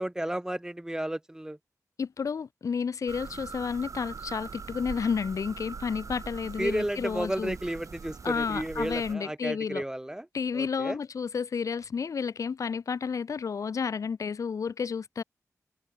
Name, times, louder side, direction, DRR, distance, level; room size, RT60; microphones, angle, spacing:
voice 1, 0.0-1.6 6.6-10.3 10.5-11.0, right 1 dB, 10° right, 1.1 m, -32 dB
voice 2, 2.0-7.5 8.2-9.8 10.3-15.2, left 6 dB, 70° left, 0.7 m, -31 dB
sound 1, 3.1-9.1, right 5 dB, 70° right, 2.8 m, -42 dB
wide cardioid pair, 100°, 6 cm